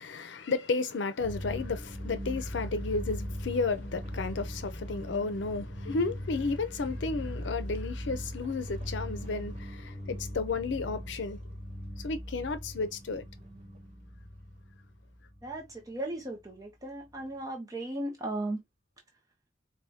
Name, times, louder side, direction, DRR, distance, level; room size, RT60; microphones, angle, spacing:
voice 1, 0.0-11.5 12.0-13.3, left 3 dB, 80° left, 0.5 m, -33 dB
sound 1, 1.2-15.8 17.1-17.2, equal, 35° right, 1.3 m, -40 dB
voice 2, 15.4-18.6, right 1 dB, 20° right, 0.7 m, -36 dB
4.7 x 2.3 x 2.7 m
head